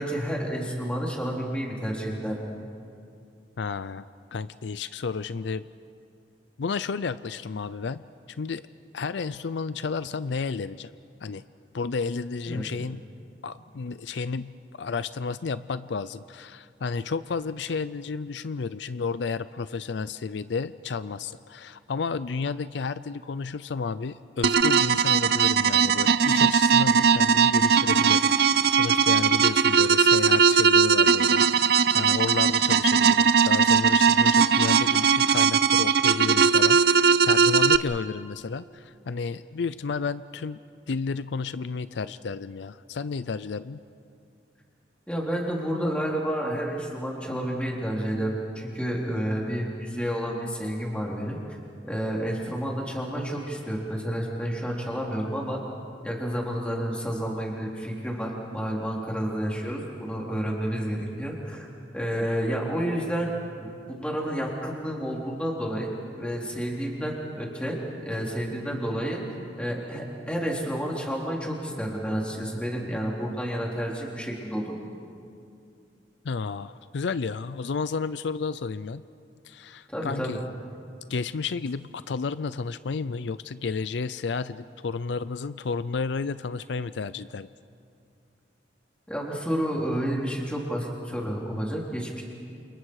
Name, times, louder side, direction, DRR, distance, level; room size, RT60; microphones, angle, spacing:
voice 1, 0.0-2.4 12.5-12.7 45.1-51.4 51.8-55.6 56.0-61.7 61.9-63.3 63.6-69.2 69.6-74.7 79.9-80.4 89.1-92.2, equal, 5° left, -2 dB, 3.7 m, -30 dB
voice 2, 3.6-4.0 4.3-5.6 6.6-8.0 8.4-8.6 8.9-10.9 11.2-11.4 11.7-13.0 13.4-37.0 37.3-40.6 40.9-43.8 76.2-79.0 79.4-80.4 81.1-87.5, left 5 dB, 75° left, 15 dB, 0.5 m, -32 dB
sound 1, 24.4-37.8, right 6 dB, 60° right, 0.6 m, -20 dB
28.5 x 28.5 x 4.8 m, 2.4 s
head